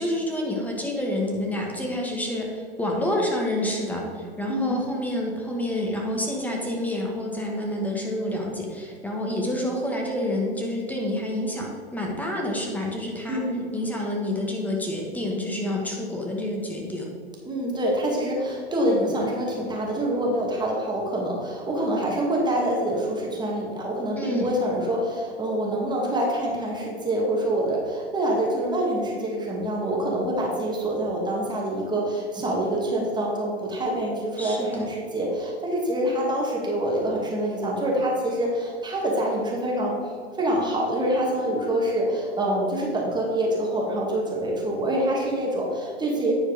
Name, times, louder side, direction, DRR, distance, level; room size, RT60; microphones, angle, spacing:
voice 1, 0.0-13.4 13.7-17.1 24.2-24.5 34.4-34.9, left 1 dB, 5° left, -1 dB, 1.6 m, -28 dB
voice 2, 4.5-4.9 13.3-13.6 17.5-40.0 40.4-46.3, right 1 dB, 15° right, -2 dB, 1.9 m, -26 dB
9.9 x 4.5 x 5.1 m, 2.1 s
hypercardioid pair, 110°, 33 cm